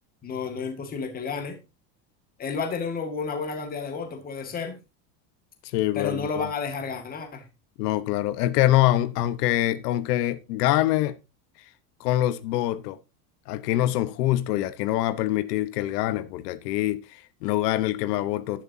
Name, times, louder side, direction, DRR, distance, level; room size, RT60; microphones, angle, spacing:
voice 1, 0.2-1.6 2.4-4.7 5.9-7.4, left 5 dB, 20° left, 2.0 m, -31 dB
voice 2, 5.6-6.3 7.8-11.2 12.0-13.0 13.5-18.6, left 14 dB, 85° left, 1.1 m, -25 dB
11.5 x 10.5 x 2.8 m
cardioid pair, 175°, 47 cm